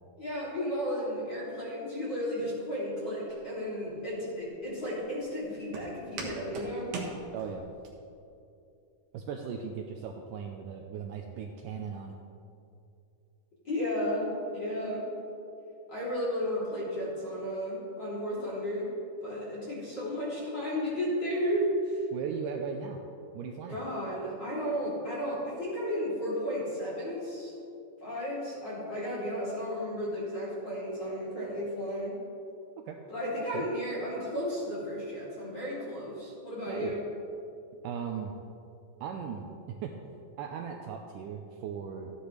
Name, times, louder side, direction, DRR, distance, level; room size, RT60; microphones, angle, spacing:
voice 1, 0.2-6.9 13.6-15.1 15.9-18.9 19.2-22.0 23.7-27.5 28.0-32.2 33.1-37.1, equal, 30° left, -8 dB, 3.4 m, -33 dB
Walk footsteps, 3.3-7.9, right 4 dB, 60° right, 2.3 m, -42 dB
voice 2, 7.3-7.7 9.1-12.2 22.1-23.0 23.3-23.8 32.9-33.0 33.5-33.7 36.7-37.0 37.8-38.4 39.0-40.0 40.4-42.1, right 7 dB, 85° right, 3 dB, 1.9 m, -38 dB
15.0 x 10.5 x 3.3 m, 2.6 s
omnidirectional pair, 4.3 m